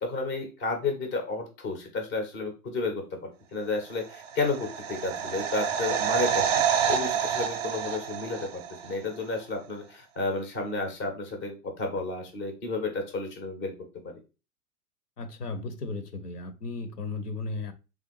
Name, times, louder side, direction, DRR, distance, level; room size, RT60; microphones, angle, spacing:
voice 1, 0.0-3.2 3.5-6.6 6.9-13.7 14.0-14.1, left 3 dB, 15° left, 4 dB, 0.3 m, -32 dB
sound 1, 4.1-9.0 9.2-9.3, right 8 dB, 45° right, 0.4 m, -28 dB
voice 2, 15.2-17.7, left 3 dB, 80° left, 10 dB, 0.6 m, -35 dB
3.2 x 2.4 x 3.1 m, 0.30 s
figure-of-eight pair, 100°, 46 cm